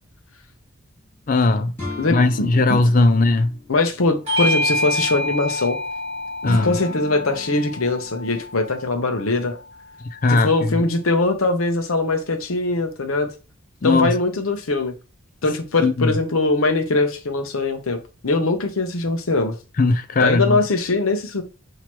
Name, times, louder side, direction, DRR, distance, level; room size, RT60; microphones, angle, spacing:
voice 1, 1.3-1.7 2.1-3.5 6.4-6.8 10.1-10.8 13.8-14.2 15.8-16.2 19.8-20.6, left 3 dB, 40° left, 0.4 m, -18 dB
sound 1, 1.8-3.8 6.4-8.6, left 2 dB, 10° left, 2.3 m, -35 dB
voice 2, 2.0-2.5 3.7-5.8 6.4-9.6 10.3-13.3 13.8-14.9 15.4-19.6 20.2-21.4, left 3 dB, 75° left, 0.8 m, -21 dB
Bell / Doorbell, 4.3-9.1, left 1 dB, 30° right, 1.4 m, -27 dB
5.9 x 2.8 x 3.0 m
head